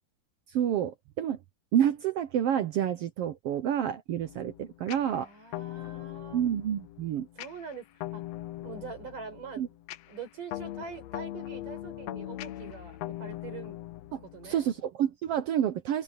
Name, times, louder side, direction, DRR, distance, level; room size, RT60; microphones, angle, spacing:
voice 1, 0.5-1.4 1.7-5.3 6.3-7.3 9.6-9.7 14.1-16.0, right 10 dB, 85° right, 1.3 m, -29 dB
sound 1, 4.2-14.8, left 15 dB, 80° left, 1.5 m, -41 dB
voice 2, 5.0-6.4 7.4-7.9 8.1-8.2 8.6-9.6 10.1-13.8 14.2-14.7, right 5 dB, 70° right, 6.9 m, -44 dB
open air
omnidirectional pair, 3.9 m